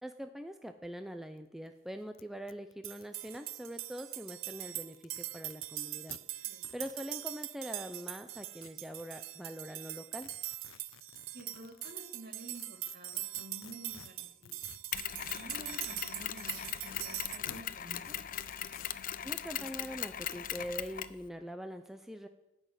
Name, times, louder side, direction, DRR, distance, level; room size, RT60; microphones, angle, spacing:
voice 1, 0.0-6.2 6.7-10.3 19.2-22.3, equal, ahead, 7 dB, 0.5 m, -43 dB
sound 1, 1.4-1.5 1.7-1.8 2.1-2.2 2.5-3.9 4.5-5.7 6.1-6.2 6.6-7.0 8.1-9.0 10.2-11.9 12.5-15.5 16.5-17.0 17.5-17.6 18.0-18.9 19.6-19.7, left 9 dB, 85° left, 0.6 m, -53 dB
sound 2, 2.8-17.4, right 14 dB, 75° right, 0.6 m, -42 dB
voice 2, 11.3-14.6 15.3-18.1, right 1 dB, 50° right, 2 dB, 2.7 m, -51 dB
Mechanisms, 14.9-21.2, left 10 dB, 45° left, 0.6 m, -39 dB
15.5 x 6.3 x 9.0 m, 0.97 s
head